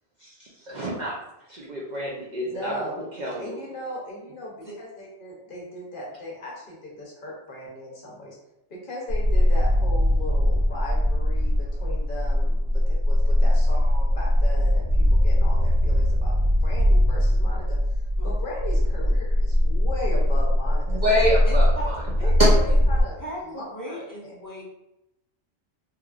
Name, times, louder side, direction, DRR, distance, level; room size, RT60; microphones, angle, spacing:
voice 1, 0.2-1.2 1.5-2.8 3.2-3.6 20.9-22.0 22.4-22.5, equal, 55° right, -5 dB, 0.5 m, -26 dB
voice 2, 2.4-3.0 3.4-8.4 8.7-17.8 18.2-21.0 22.2-23.2 23.4-24.4, left 1 dB, 55° left, -3 dB, 0.8 m, -37 dB
sound 1, 9.1-23.0, left 1 dB, 85° right, 1.0 m, -21 dB
voice 3, 21.5-21.9 22.2-22.3 23.2-24.6, right 1 dB, 25° left, -7 dB, 0.5 m, -37 dB
3.0 x 2.3 x 2.3 m, 0.87 s
omnidirectional pair, 1.2 m